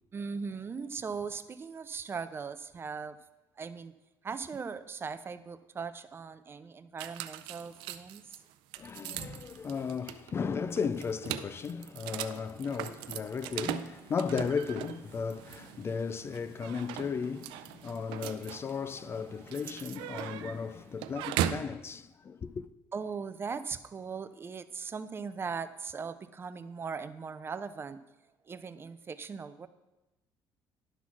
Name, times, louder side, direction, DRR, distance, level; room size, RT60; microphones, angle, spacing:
voice 1, 0.1-3.2 3.6-3.9 4.2-8.2 22.9-28.0 28.5-29.7, right 5 dB, 30° right, 0.5 m, -39 dB
sound 1, 7.0-21.7, right 12 dB, 90° right, 0.5 m, -40 dB
voice 2, 8.8-22.7, left 6 dB, 30° left, 0.4 m, -35 dB
11.0 x 4.1 x 6.0 m
cardioid pair, 105°, 8 cm